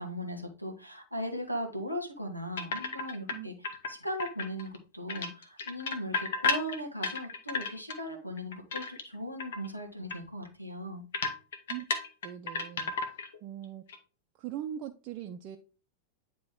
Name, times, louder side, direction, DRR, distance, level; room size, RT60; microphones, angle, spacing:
voice 1, 0.0-11.0, equal, 90° left, 1.4 m, -38 dB
sound 1, 2.6-3.3 3.6-4.8 5.1-8.0 8.4-9.1 9.4-9.7 10.1-10.2 10.5-10.6 11.1-13.4 13.6-14.0, left 4 dB, 60° left, 1.1 m, -33 dB
voice 2, 12.2-13.8 14.3-15.6, right 11 dB, 40° right, 0.5 m, -41 dB
9.6 x 3.4 x 3.6 m
figure-of-eight pair, 90°, 0 cm